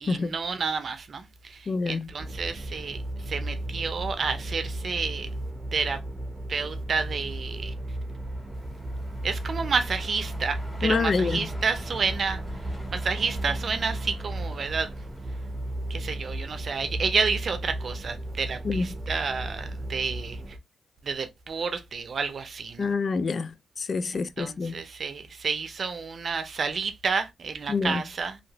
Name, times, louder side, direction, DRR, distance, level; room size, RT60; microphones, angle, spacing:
voice 1, 0.0-3.0 3.3-5.3 5.7-6.0 6.5-7.7 9.2-12.4 12.9-14.9 15.9-20.4 21.0-22.9 24.1-28.4, right 5 dB, 55° right, 0.6 m, -30 dB
voice 2, 1.7-2.1 10.8-11.4 18.6-18.9 22.8-24.8 27.7-28.0, left 4 dB, 50° left, 0.3 m, -27 dB
sound 1, 2.2-20.6, right 1 dB, 25° right, 0.8 m, -35 dB
Truck, 7.3-16.4, right 1 dB, 25° left, 1.7 m, -41 dB
2.9 x 2.9 x 2.7 m
cardioid pair, 65°, 0 cm